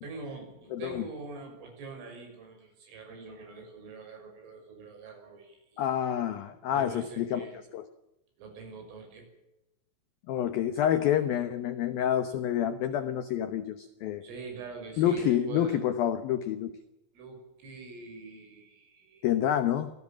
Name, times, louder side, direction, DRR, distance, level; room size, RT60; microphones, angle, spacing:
voice 1, 0.0-5.8 6.7-7.6 8.4-9.3 14.2-15.9 17.1-19.3 19.7-19.8, right 4 dB, 80° right, 3 dB, 8.7 m, -44 dB
voice 2, 0.7-1.1 5.8-7.5 7.7-7.9 10.3-14.2 15.0-16.7 19.2-19.9, left 10 dB, 80° left, 11 dB, 2.1 m, -28 dB
25.5 x 18.0 x 7.5 m, 0.92 s
omnidirectional pair, 5.8 m